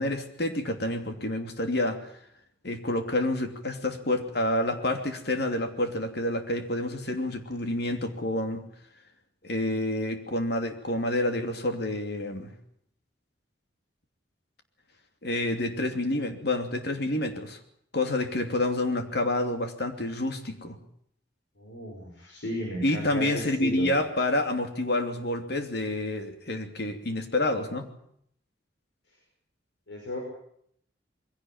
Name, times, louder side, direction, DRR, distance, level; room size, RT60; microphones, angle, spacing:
voice 1, 0.0-2.1 2.6-8.7 9.4-12.5 15.2-17.6 17.9-20.8 22.8-27.9, left 1 dB, 65° left, 6 dB, 2.9 m, -28 dB
voice 2, 21.6-23.3 23.6-23.9 29.9-30.2, equal, 90° left, 0 dB, 6.1 m, -34 dB
22.5 x 17.0 x 8.9 m, 0.68 s
head